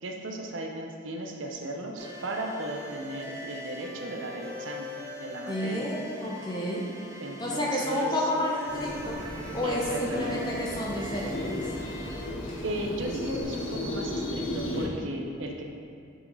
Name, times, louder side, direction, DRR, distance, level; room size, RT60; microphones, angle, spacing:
voice 1, 0.0-5.9 7.2-8.2 9.6-10.4 12.6-15.6, right 1 dB, 65° right, 1 dB, 0.7 m, -36 dB
sound 1, 2.0-12.3, left 1 dB, 15° right, 0.6 m, -42 dB
voice 2, 5.5-6.9 7.4-9.2 9.5-11.7, left 1 dB, 20° left, -3 dB, 0.8 m, -30 dB
sound 2, 8.7-14.9, left 1 dB, 65° left, 1.0 m, -35 dB
5.9 x 5.1 x 4.0 m, 2.4 s
head